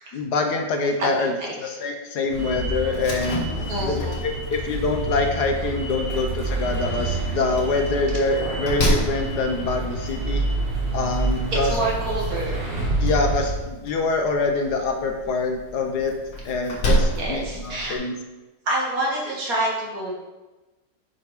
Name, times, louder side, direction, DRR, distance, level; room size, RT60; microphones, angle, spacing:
voice 1, 0.1-3.5 3.8-10.4 10.9-11.7 13.0-16.1 16.4-18.2, left 3 dB, 65° left, 3 dB, 1.3 m, -25 dB
voice 2, 1.0-1.6 3.7-4.2 11.7-12.6 17.1-18.0 18.7-20.1, right 1 dB, 50° right, -3 dB, 2.1 m, -27 dB
sound 1, 2.3-13.5, right 2 dB, 35° right, 2.0 m, -28 dB
Slam, 2.9-17.9, equal, 85° left, 2.6 m, -31 dB
8.1 x 4.9 x 4.8 m, 1.1 s
omnidirectional pair, 1.9 m